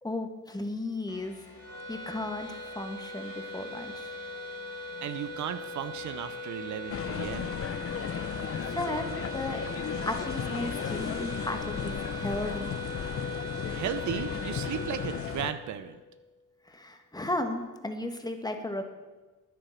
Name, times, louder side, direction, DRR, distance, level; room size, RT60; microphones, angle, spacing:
voice 1, 0.0-1.4 1.9-4.1 8.6-9.6 10.0-12.8 16.7-18.8, left 2 dB, 15° left, 5 dB, 1.7 m, -35 dB
sound 1, 1.1-14.4, left 4 dB, 70° left, 2.5 m, -50 dB
sound 2, 1.6-16.1, equal, 50° right, 4.6 m, -40 dB
voice 2, 5.0-7.6 13.7-16.0, right 9 dB, 70° right, 11 dB, 0.8 m, -35 dB
sound 3, 6.9-15.5, left 8 dB, 50° left, 0.7 m, -35 dB
10.0 x 9.7 x 7.2 m, 1.2 s
cardioid pair, 90°, 30 cm